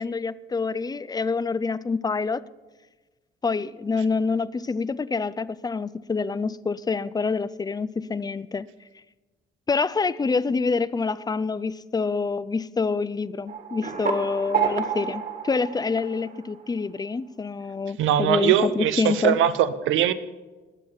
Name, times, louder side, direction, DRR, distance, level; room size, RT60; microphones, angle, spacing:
voice 1, 0.0-2.4 3.4-8.7 9.7-19.4, left 4 dB, 20° left, 0.5 m, -26 dB
sound 1, 13.5-16.8, right 7 dB, 45° right, 2.2 m, -29 dB
voice 2, 18.0-20.1, right 10 dB, 85° right, 0.8 m, -21 dB
21.0 x 7.7 x 5.6 m
cardioid pair, 90°, 20 cm